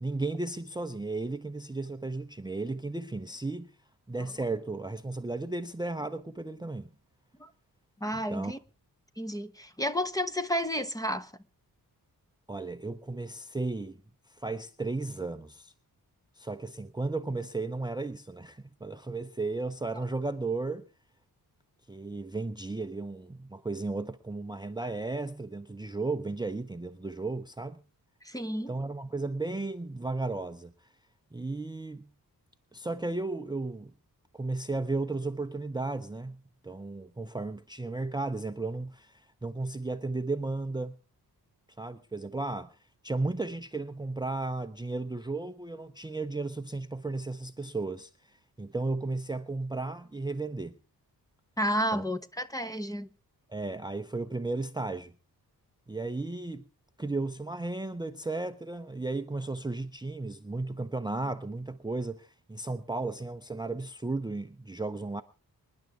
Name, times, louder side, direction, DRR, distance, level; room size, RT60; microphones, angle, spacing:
voice 1, 0.0-3.7 4.1-6.9 8.1-8.5 12.5-14.0 14.3-15.7 16.4-20.9 21.9-27.8 28.7-30.9 31.3-32.1 32.7-33.9 34.3-41.0 41.8-42.8 43.0-50.8 51.9-52.0 53.5-55.1 55.9-56.7 57.0-65.2, right 3 dB, 10° right, 0.6 m, -34 dB
voice 2, 8.0-8.6 9.2-11.3 20.0-20.1 28.2-28.7 51.6-53.1, equal, 10° left, 0.9 m, -31 dB
26.5 x 10.5 x 3.6 m
wide cardioid pair, 135°, 38 cm